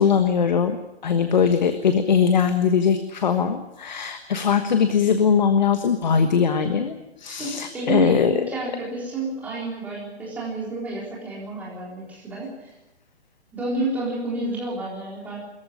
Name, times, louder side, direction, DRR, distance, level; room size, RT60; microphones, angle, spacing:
voice 1, 0.0-8.4, left 6 dB, 40° left, 8 dB, 1.4 m, -21 dB
voice 2, 7.4-12.7 13.5-15.4, right 2 dB, 5° right, -5 dB, 3.9 m, -30 dB
23.0 x 14.5 x 9.8 m, 1.0 s
hypercardioid pair, 180°, 34 cm